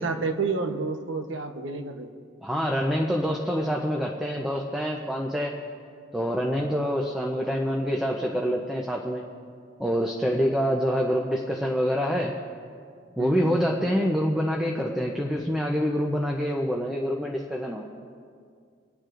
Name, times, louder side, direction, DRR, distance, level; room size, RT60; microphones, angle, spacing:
voice 1, 0.0-2.1 13.2-13.6, right 4 dB, 85° right, 6 dB, 0.9 m, -30 dB
voice 2, 2.4-5.6 6.1-9.2 9.8-12.3 13.2-17.9, equal, ahead, -1 dB, 0.6 m, -26 dB
27.0 x 9.3 x 2.5 m, 2.2 s
head